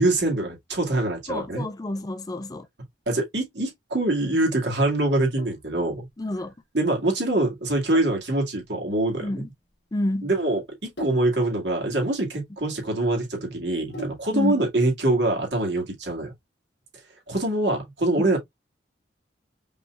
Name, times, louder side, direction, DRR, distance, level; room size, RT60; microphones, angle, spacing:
voice 1, 0.0-1.7 3.1-6.1 6.7-9.4 10.2-16.3 17.3-18.4, right 2 dB, 70° right, 2.2 m, -24 dB
voice 2, 1.3-2.7 6.2-6.5 9.2-9.4 9.9-10.3 14.3-14.6 18.2-18.3, left 1 dB, 20° left, 0.4 m, -28 dB
Sink (filling or washing), 5.4-14.5, equal, 70° left, 2.0 m, -44 dB
5.5 x 3.3 x 2.4 m
head